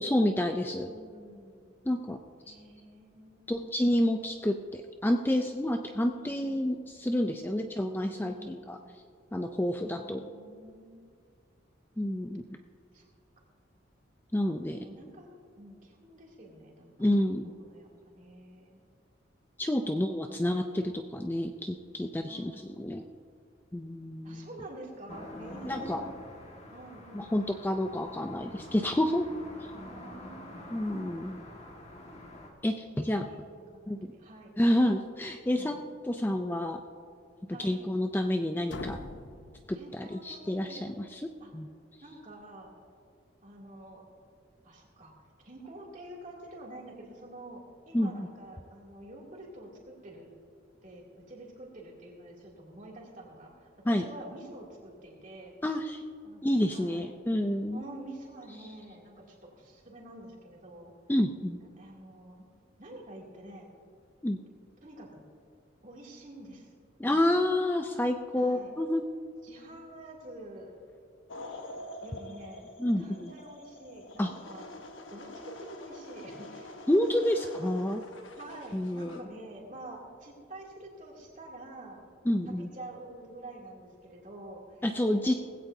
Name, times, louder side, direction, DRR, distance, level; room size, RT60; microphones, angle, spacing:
voice 1, 0.0-0.9 1.9-2.2 2.5-2.6 3.5-8.8 9.3-10.2 12.0-12.4 14.3-14.9 17.0-17.5 19.6-23.0 23.7-24.5 25.6-26.0 27.1-29.3 30.7-31.4 32.6-33.3 33.9-34.1 34.6-35.8 36.1-36.8 37.6-39.0 39.7-41.2 41.5-41.7 47.9-48.3 53.9-54.0 55.6-56.0 56.4-57.8 61.1-61.6 64.2-64.4 67.0-69.0 72.8-73.3 74.2-74.3 76.9-78.0 78.7-79.2 82.3-82.7 84.8-85.4, left 1 dB, 10° left, 5 dB, 0.4 m, -29 dB
voice 2, 0.8-1.7 2.4-3.7 6.2-6.6 7.2-7.7 8.2-8.9 9.8-11.0 12.9-13.0 14.7-17.1 17.6-18.8 22.3-22.7 24.2-26.0 26.7-27.3 29.7-30.8 32.8-34.6 35.5-35.8 37.5-37.8 39.8-40.9 41.4-41.5 42.0-42.7 43.4-44.0 44.6-45.1 45.4-50.3 50.8-55.5 56.2-57.0 57.7-60.9 61.6-62.5 62.8-63.7 64.8-65.2 65.8-66.7 67.0-67.4 68.4-68.7 69.4-70.8 71.4-71.5 72.0-72.6 73.0-77.0 77.6-77.8 78.3-82.0 82.5-84.8 85.1-85.4, right 1 dB, 40° right, -3 dB, 2.7 m, -48 dB
sound 1, 25.1-32.5, left 1 dB, 35° left, 1.7 m, -46 dB
sound 2, 38.7-40.5, left 3 dB, 70° left, 0.7 m, -44 dB
sound 3, 71.3-79.2, left 2 dB, 85° left, 1.2 m, -46 dB
19.0 x 16.0 x 2.7 m, 2.3 s
head